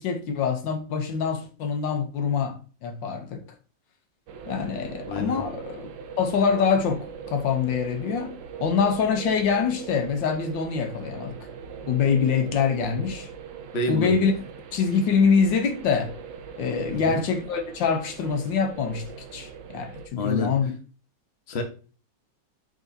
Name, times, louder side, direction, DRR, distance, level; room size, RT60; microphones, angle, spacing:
voice 1, 0.0-3.4 4.5-5.9 6.2-11.4 11.9-13.3 13.9-14.3 14.7-16.1 16.6-19.1 19.3-20.7, left 6 dB, 75° left, 1.6 m, -25 dB
sound 1, 4.3-20.1, right 7 dB, 75° right, 1.4 m, -41 dB
voice 2, 5.0-5.4 13.7-14.2 16.9-17.2 20.2-20.5 21.5-21.6, left 2 dB, 40° left, 1.3 m, -27 dB
9.3 x 3.8 x 2.7 m
omnidirectional pair, 2.0 m